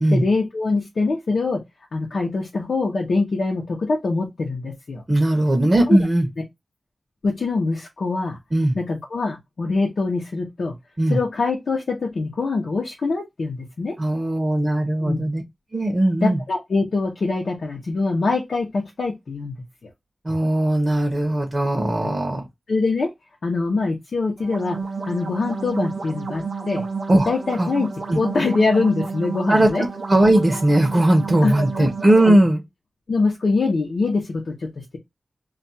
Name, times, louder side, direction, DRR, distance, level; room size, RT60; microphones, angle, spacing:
voice 1, 0.1-1.6 1.9-5.0 5.9-6.0 7.2-8.4 8.7-10.7 11.1-13.9 15.0-15.2 16.2-19.5 22.0-22.1 22.7-23.1 23.4-24.8 25.1-26.8 27.3-29.8 31.4-31.9 32.3-32.4 33.1-35.0, left 3 dB, 90° left, 0.7 m, -23 dB
voice 2, 5.1-6.3 8.5-8.7 11.0-11.2 14.0-15.4 15.7-16.4 20.2-22.4 27.1-27.3 27.6-27.7 28.1-28.2 29.5-29.7 30.1-32.6, right 1 dB, 40° right, 0.7 m, -18 dB
sound 1, 24.4-32.3, right 5 dB, 80° right, 0.5 m, -31 dB
2.4 x 2.3 x 4.0 m
wide cardioid pair, 75°, 0 cm